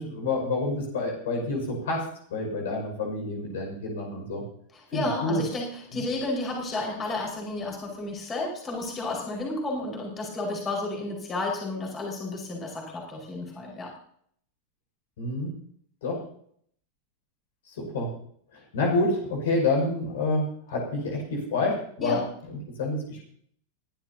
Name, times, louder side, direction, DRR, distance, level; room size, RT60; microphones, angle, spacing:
voice 1, 0.0-2.0 2.3-4.4 4.9-5.4 5.9-6.0 15.2-15.5 16.0-16.2 17.8-18.1 18.7-22.2 22.8-23.3, left 2 dB, 60° left, 0 dB, 5.8 m, -28 dB
voice 2, 4.7-13.9 22.0-22.3, left 2 dB, 20° left, -2 dB, 5.1 m, -32 dB
23.0 x 12.5 x 2.9 m, 0.63 s
figure-of-eight pair, 90°, 0 cm